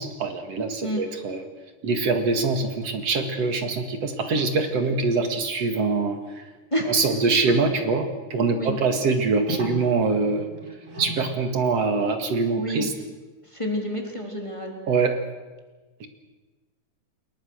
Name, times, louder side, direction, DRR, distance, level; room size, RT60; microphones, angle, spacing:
voice 1, 0.0-1.4 1.8-6.4 6.8-10.5 11.0-12.9 14.9-15.2 16.0-16.1, right 4 dB, 50° right, 6 dB, 2.3 m, -24 dB
sound 1, 4.7-4.8 5.0-5.1 5.9-6.0 6.3-6.4 7.5-7.6 8.9-11.9 13.9-14.0, right 1 dB, 25° right, 8.4 m, -38 dB
voice 2, 12.5-12.9 13.4-14.7, equal, 10° left, 1 dB, 3.1 m, -29 dB
28.0 x 22.5 x 6.4 m, 1.2 s
omnidirectional pair, 4.7 m